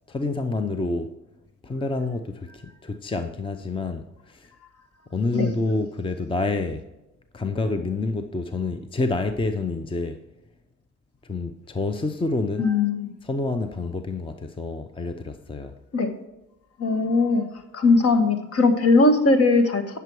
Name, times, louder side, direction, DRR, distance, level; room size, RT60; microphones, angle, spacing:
voice 1, 0.1-1.2 1.6-4.5 5.1-6.8 7.3-10.2 11.2-12.7 13.2-15.7, left 3 dB, 15° left, 8 dB, 0.7 m, -28 dB
voice 2, 12.6-13.1 15.9-16.1 16.8-17.4 17.7-20.0, left 3 dB, 50° left, 8 dB, 1.4 m, -19 dB
9.5 x 6.8 x 4.6 m, 0.96 s
cardioid pair, 90°, 30 cm